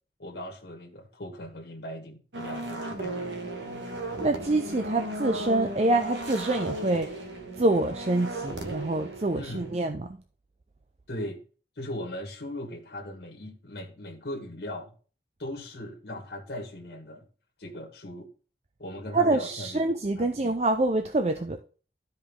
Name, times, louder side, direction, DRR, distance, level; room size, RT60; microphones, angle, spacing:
voice 1, 0.2-3.2 9.3-9.7 11.1-11.4 11.8-14.9 15.4-17.3 17.6-18.3 18.8-19.8 20.2-20.3 21.4-21.5, left 1 dB, 70° left, 1.6 m, -39 dB
sound 1, 2.3-9.8, right 1 dB, 85° right, 1.5 m, -36 dB
voice 2, 4.2-7.1 7.6-10.2 19.1-21.6, right 2 dB, 35° right, 0.5 m, -26 dB
12.5 x 5.1 x 3.7 m
head